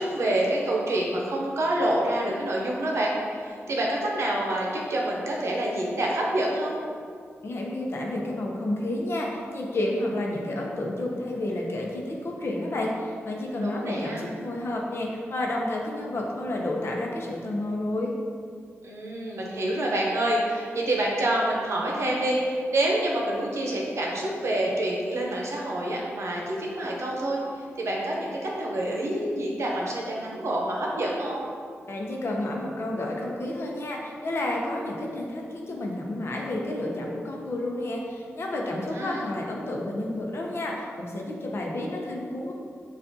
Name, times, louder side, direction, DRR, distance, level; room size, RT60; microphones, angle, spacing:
voice 1, 0.0-6.8 13.6-14.2 18.8-31.5 38.6-39.3, right 1 dB, 75° right, -2 dB, 0.8 m, -27 dB
voice 2, 7.4-18.1 31.9-42.5, left 1 dB, 60° left, -1 dB, 0.7 m, -30 dB
6.6 x 2.5 x 2.7 m, 2.2 s
wide cardioid pair, 85°, 5 cm